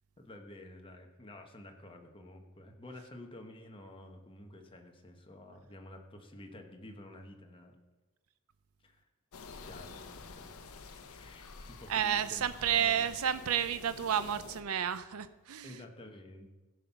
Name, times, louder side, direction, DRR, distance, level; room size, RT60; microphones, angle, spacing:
voice 1, 0.2-7.8 8.8-9.0 9.5-10.6 11.0-12.4 12.7-13.1 15.6-16.5, left 1 dB, 25° left, 3 dB, 1.1 m, -51 dB
sound 1, 9.3-14.6, left 4 dB, 80° left, 0.7 m, -49 dB
voice 2, 11.9-15.8, right 9 dB, 80° right, 13 dB, 0.5 m, -31 dB
16.0 x 5.6 x 5.7 m, 1.2 s
head